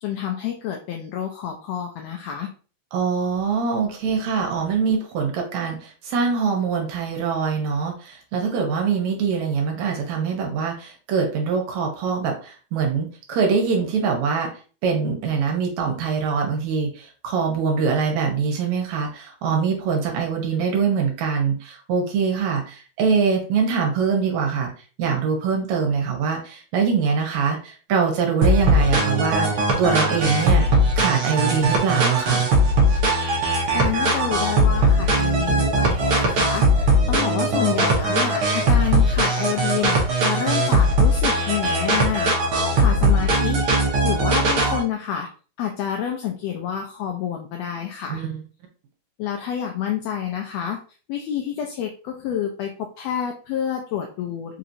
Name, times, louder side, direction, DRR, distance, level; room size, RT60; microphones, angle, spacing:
voice 1, 0.0-2.5 33.7-42.3 42.7-43.6 44.0-45.3 45.6-48.2 49.2-50.8 51.1-54.6, left 9 dB, 80° left, 2 dB, 1.5 m, -28 dB
voice 2, 2.9-14.5 14.8-24.7 25.0-30.6 31.0-32.4 48.1-48.4, right 5 dB, 75° right, 2 dB, 2.2 m, -23 dB
sound 1, 28.4-44.8, right 1 dB, 60° right, 1.5 m, -20 dB
4.9 x 2.9 x 2.6 m, 0.38 s
omnidirectional pair, 3.3 m